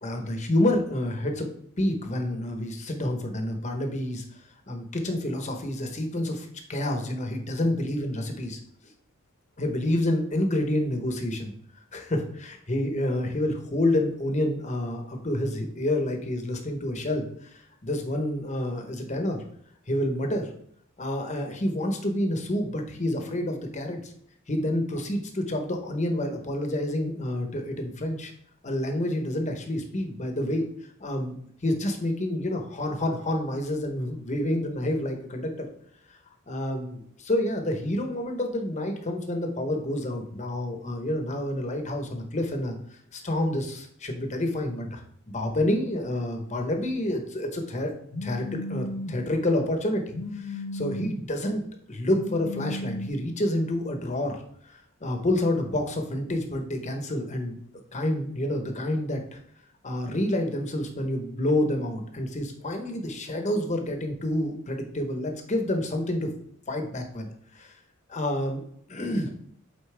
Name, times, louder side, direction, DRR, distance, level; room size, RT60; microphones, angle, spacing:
voice 1, 0.0-1.5 1.8-4.2 4.7-8.6 9.6-11.5 11.9-17.5 17.8-19.4 19.9-20.5 21.0-24.0 24.5-28.3 28.6-30.7 31.0-31.3 31.6-35.7 36.5-42.8 43.1-45.0 45.3-47.9 48.2-51.6 51.9-57.6 57.9-59.4 59.8-66.3 66.7-67.7 68.1-68.6 68.9-69.3, left 1 dB, 35° left, 4 dB, 0.9 m, -28 dB
Telephone, 48.1-49.2 50.1-51.2 52.1-53.1, left 2 dB, 80° left, 0.9 m, -34 dB
8.4 x 4.0 x 3.4 m, 0.67 s
head